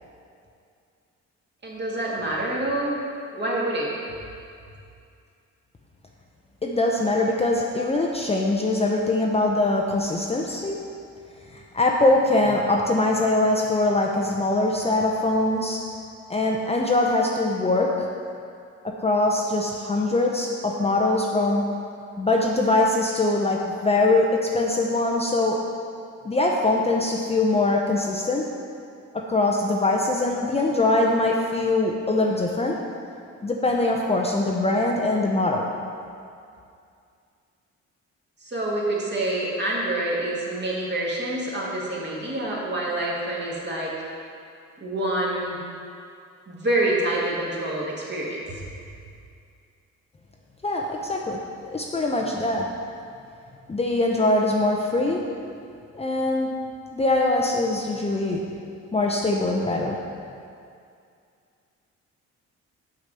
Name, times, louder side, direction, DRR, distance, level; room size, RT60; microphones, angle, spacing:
voice 1, 1.6-3.0 3.3-3.9 38.4-43.9 44.8-45.6 46.5-48.6, right 1 dB, 35° right, -5 dB, 2.0 m, -27 dB
voice 2, 6.6-10.8 11.5-15.8 16.3-18.1 18.8-21.6 22.2-25.6 26.2-28.5 29.1-32.8 33.4-35.7 50.6-51.4 51.7-52.7 53.7-55.2 55.9-56.5 56.9-58.4 58.9-60.0, left 2 dB, 20° left, -1 dB, 0.7 m, -22 dB
6.5 x 4.8 x 6.8 m, 2.4 s
cardioid pair, 90°, 30 cm